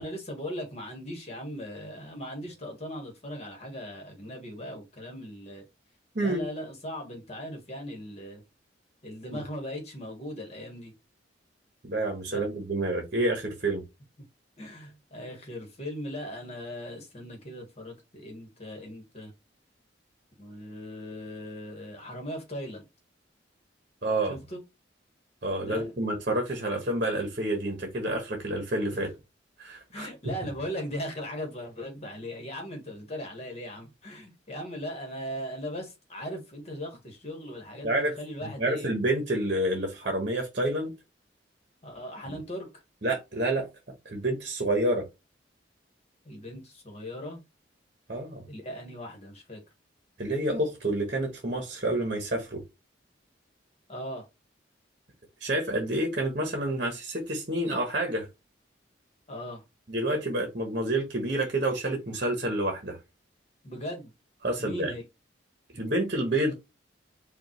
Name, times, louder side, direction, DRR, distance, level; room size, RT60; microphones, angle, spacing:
voice 1, 0.0-5.6 6.2-8.4 9.0-10.9 12.3-12.5 14.6-19.3 20.4-22.8 24.3-24.6 25.6-25.9 28.8-29.1 29.9-38.9 41.8-42.7 46.2-47.4 48.4-49.6 53.9-54.3 59.3-59.6 63.6-64.1 64.6-65.0, equal, 35° left, 1.5 m, -38 dB
voice 2, 11.8-13.8 24.0-24.4 25.4-29.1 29.6-30.1 37.8-38.1 38.6-40.9 42.3-42.4 43.0-43.7 44.0-45.1 48.1-48.4 50.2-52.6 55.4-58.3 59.9-63.0 64.4-64.9 65.7-66.5, right 1 dB, 45° right, 1.0 m, -28 dB
5.0 x 2.4 x 3.1 m
head